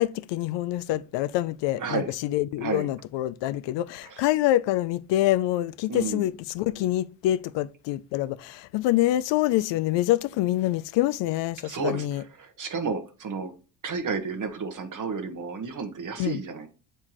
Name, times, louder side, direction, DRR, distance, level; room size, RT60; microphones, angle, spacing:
voice 1, 0.0-12.2 16.2-16.4, left 15 dB, 65° left, 0.6 m, -26 dB
voice 2, 1.8-2.1 2.6-2.9 4.0-4.2 5.9-6.2 11.6-13.5 13.8-16.7, right 4 dB, 40° right, 1.2 m, -32 dB
7.0 x 4.4 x 3.0 m
supercardioid pair, 80°, 47 cm